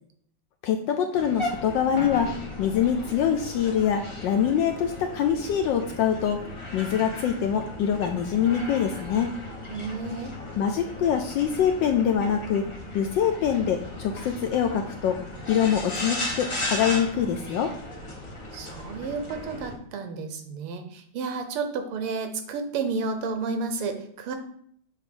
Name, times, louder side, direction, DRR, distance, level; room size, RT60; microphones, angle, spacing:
voice 1, 0.6-2.3 2.6-6.4 6.7-9.3 10.6-12.6 12.9-15.2 15.5-17.7, left 8 dB, 75° left, 5 dB, 1.0 m, -24 dB
sound 1, 1.1-19.7, left 1 dB, 25° left, 0.7 m, -36 dB
voice 2, 9.7-10.3 18.5-24.3, right 4 dB, 80° right, 6 dB, 1.7 m, -31 dB
7.8 x 2.8 x 5.3 m, 0.64 s
omnidirectional pair, 2.4 m